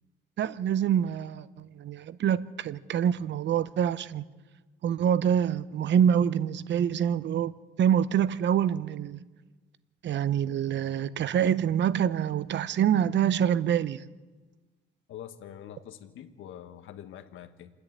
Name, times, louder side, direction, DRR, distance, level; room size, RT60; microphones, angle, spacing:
voice 1, 0.4-4.2 4.8-9.2 10.0-14.0, right 9 dB, 65° right, 0.8 m, -26 dB
voice 2, 15.1-17.7, left 10 dB, 80° left, 1.5 m, -45 dB
29.0 x 10.5 x 8.7 m
cardioid pair, 90°, 20 cm